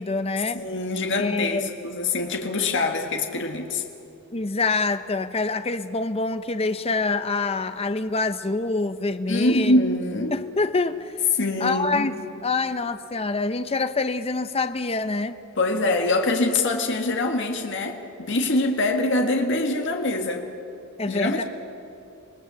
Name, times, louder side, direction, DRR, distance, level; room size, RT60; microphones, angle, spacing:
voice 1, 0.0-0.6 1.2-1.7 4.3-9.8 10.3-11.1 11.6-15.4 21.0-21.4, left 3 dB, 30° left, 11 dB, 0.7 m, -26 dB
voice 2, 0.5-3.8 9.3-10.3 11.3-12.1 15.6-20.4 21.1-21.4, left 2 dB, 60° left, 3 dB, 1.7 m, -24 dB
26.5 x 19.0 x 6.9 m, 2.8 s
head